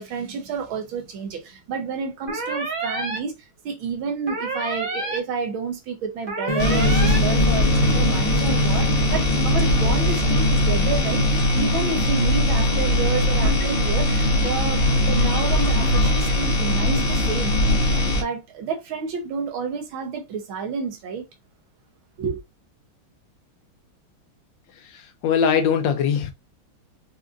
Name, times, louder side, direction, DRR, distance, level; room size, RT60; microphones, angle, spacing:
voice 1, 0.0-21.3 22.2-22.4, right 5 dB, 75° right, 1.7 m, -30 dB
sound 1, 2.3-3.2 4.3-5.2 6.3-7.2, right 3 dB, 45° right, 1.3 m, -28 dB
sound 2, 6.5-11.5, left 3 dB, 55° left, 0.4 m, -27 dB
sound 3, 6.6-18.2, left 1 dB, 35° left, 1.0 m, -20 dB
voice 2, 24.9-26.3, left 7 dB, 75° left, 1.1 m, -21 dB
4.9 x 2.8 x 2.5 m
omnidirectional pair, 2.3 m